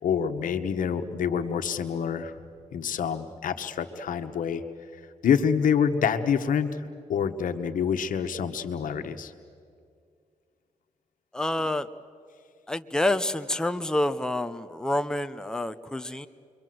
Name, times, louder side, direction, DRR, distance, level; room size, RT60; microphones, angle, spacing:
voice 1, 0.0-2.3 2.7-4.6 5.2-6.8 7.1-9.3, left 7 dB, 80° left, 8 dB, 1.4 m, -26 dB
voice 2, 11.3-11.9 12.7-16.3, left 1 dB, 5° left, 9 dB, 0.8 m, -28 dB
28.5 x 23.0 x 7.8 m, 2.2 s
cardioid pair, 100°, 13 cm